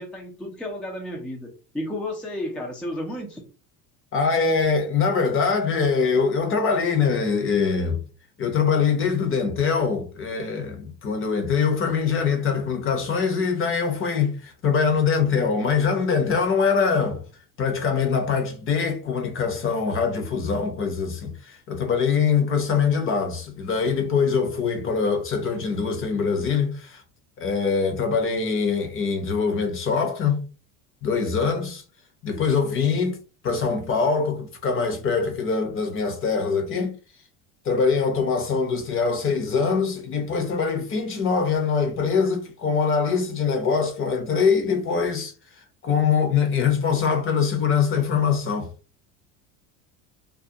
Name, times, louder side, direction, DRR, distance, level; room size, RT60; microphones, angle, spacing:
voice 1, 0.0-3.4, left 1 dB, ahead, 0.4 m, -32 dB
voice 2, 4.1-8.0 8.4-17.2 17.6-27.0 27.4-30.5 31.0-31.8 32.2-33.2 33.4-37.0 37.6-45.3 45.8-48.7, left 5 dB, 30° left, 0.7 m, -23 dB
2.4 x 2.1 x 2.6 m
cardioid pair, 130°, 40 cm